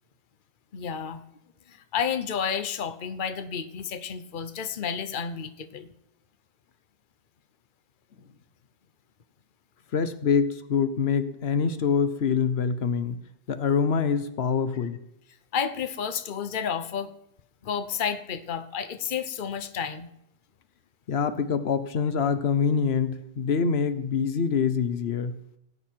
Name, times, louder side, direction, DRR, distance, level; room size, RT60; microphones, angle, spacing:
voice 1, 0.7-1.2 1.7-5.9 15.5-17.1 17.6-20.1, left 7 dB, 55° left, 10 dB, 1.0 m, -31 dB
voice 2, 9.9-13.2 13.5-15.0 21.1-25.4, left 6 dB, 85° left, 11 dB, 1.1 m, -25 dB
17.5 x 8.9 x 4.6 m, 0.81 s
omnidirectional pair, 1.0 m